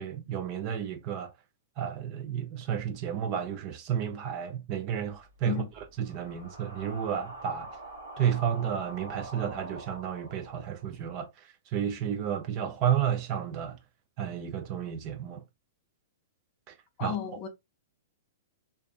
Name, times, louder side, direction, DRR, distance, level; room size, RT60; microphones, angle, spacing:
voice 1, 0.0-1.3 1.8-5.6 6.0-7.7 8.2-13.8 14.2-15.4 16.7-16.8 17.0-17.2, right 9 dB, 40° right, 0.5 m, -31 dB
sound 1, 5.2-11.1, right 2 dB, 70° right, 0.8 m, -46 dB
voice 2, 17.0-17.5, left 10 dB, 35° left, 0.6 m, -33 dB
2.5 x 2.3 x 2.3 m
hypercardioid pair, 115°, 0 cm